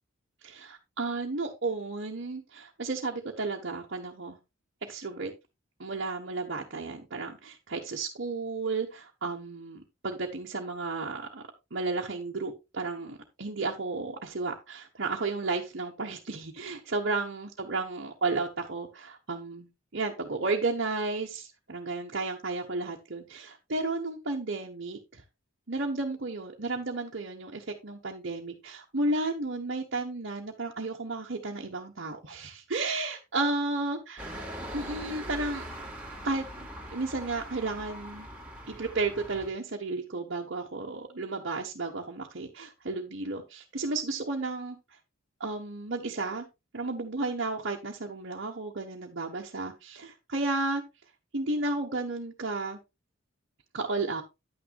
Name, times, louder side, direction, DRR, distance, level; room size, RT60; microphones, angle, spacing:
voice 1, 0.4-4.4 4.8-5.3 5.8-11.4 11.7-25.2 25.7-34.3 34.7-35.6 36.2-36.5 36.9-38.3 38.7-44.8 45.4-46.5 46.7-50.8 51.3-52.8 53.7-54.2, right 3 dB, 55° right, -2 dB, 1.3 m, -33 dB
sound 1, 34.2-39.5, right 1 dB, 10° right, 2.5 m, -41 dB
10.0 x 9.4 x 2.5 m, 0.24 s
head